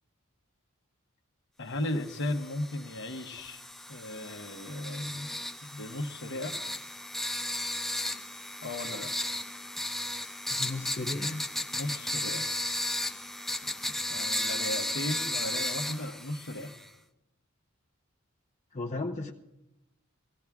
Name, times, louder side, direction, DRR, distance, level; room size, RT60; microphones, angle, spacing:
voice 1, 1.6-3.6 3.9-5.3 5.6-6.6 8.6-9.1 11.7-12.5 14.1-16.7, left 1 dB, 60° left, 5 dB, 1.0 m, -36 dB
sound 1, 2.0-16.9, left 1 dB, ahead, 0.4 m, -35 dB
voice 2, 10.5-11.4 18.7-19.3, left 2 dB, 35° left, 0 dB, 0.8 m, -34 dB
24.0 x 16.5 x 2.4 m, 0.92 s
head